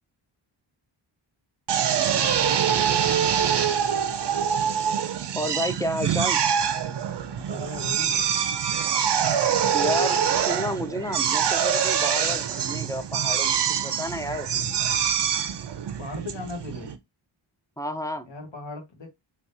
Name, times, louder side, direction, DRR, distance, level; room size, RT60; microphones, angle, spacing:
Drill, 1.7-17.0, right 8 dB, 60° right, 0.6 m, -24 dB
voice 1, 5.3-6.4 9.7-14.5 17.8-18.3, equal, 10° left, 0.3 m, -30 dB
voice 2, 7.3-8.1 16.0-16.9 18.2-19.1, left 3 dB, 65° left, 1.4 m, -37 dB
3.4 x 2.9 x 2.6 m
wide cardioid pair, 100°, 49 cm